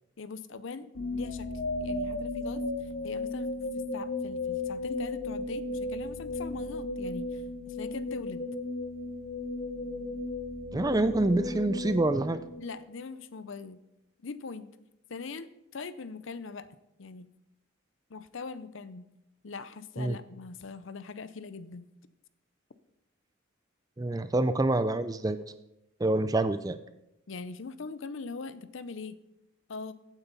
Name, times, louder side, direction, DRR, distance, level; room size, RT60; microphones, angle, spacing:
voice 1, 0.2-0.9 1.1-1.5 1.8-3.5 3.8-8.5 12.6-13.8 14.2-14.7 15.1-16.7 17.0-17.3 18.1-19.1 19.4-21.9 27.3-29.2 29.7-29.9, left 4 dB, 60° left, 15 dB, 0.6 m, -41 dB
sound 1, 0.9-13.0, left 2 dB, 80° left, 1.9 m, -35 dB
voice 2, 10.7-12.4 20.0-20.2 24.0-25.4 26.0-26.8, right 2 dB, 15° right, 12 dB, 0.4 m, -26 dB
15.0 x 9.0 x 4.0 m, 0.91 s
head